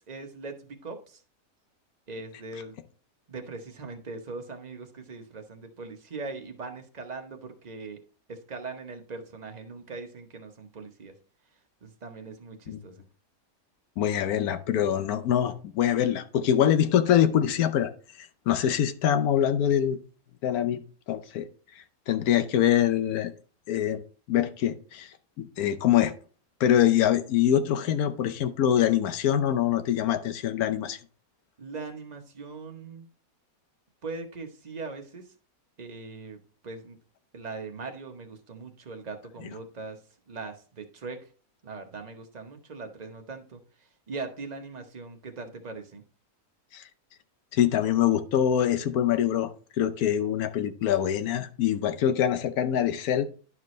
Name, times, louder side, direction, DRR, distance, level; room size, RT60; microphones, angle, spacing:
voice 1, 0.1-1.2 2.1-2.8 3.3-8.0 8.3-11.1 11.8-13.0 31.6-33.1 34.0-35.2 35.8-36.4 36.6-37.0 37.3-40.0 40.3-41.2 41.6-46.0, right 4 dB, 35° right, 5 dB, 0.9 m, -40 dB
voice 2, 14.0-17.9 18.2-20.0 20.4-20.8 21.1-21.5 21.8-23.3 23.7-24.0 24.3-26.1 26.6-31.0 46.7-46.8 47.5-49.5 49.8-53.2, left 10 dB, 85° left, 10 dB, 1.2 m, -24 dB
11.0 x 4.7 x 3.1 m, 0.39 s
omnidirectional pair, 1.5 m